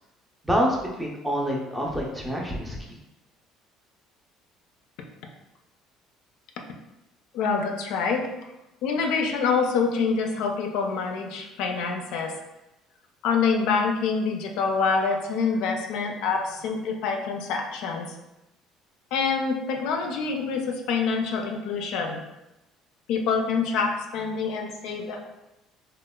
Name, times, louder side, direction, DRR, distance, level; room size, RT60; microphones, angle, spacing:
voice 1, 0.4-2.8, equal, 10° right, -1 dB, 0.5 m, -26 dB
voice 2, 7.3-8.3 8.8-12.3 13.2-18.1 19.1-22.2 23.1-25.3, left 5 dB, 75° left, 3 dB, 0.3 m, -26 dB
2.9 x 2.1 x 2.2 m, 0.95 s
cardioid pair, 110°, 0 cm